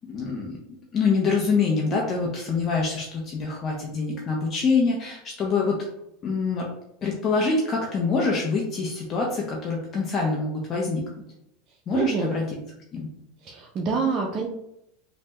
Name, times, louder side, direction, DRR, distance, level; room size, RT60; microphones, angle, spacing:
voice 1, 0.1-0.6 0.9-5.9 6.2-6.7 7.0-11.1 11.9-12.6 12.9-13.1, left 4 dB, 35° left, -2 dB, 0.5 m, -25 dB
voice 2, 11.9-12.3 13.4-14.5, right 5 dB, 40° right, -1 dB, 0.4 m, -26 dB
3.2 x 2.1 x 2.8 m, 0.79 s
supercardioid pair, 115°, 0 cm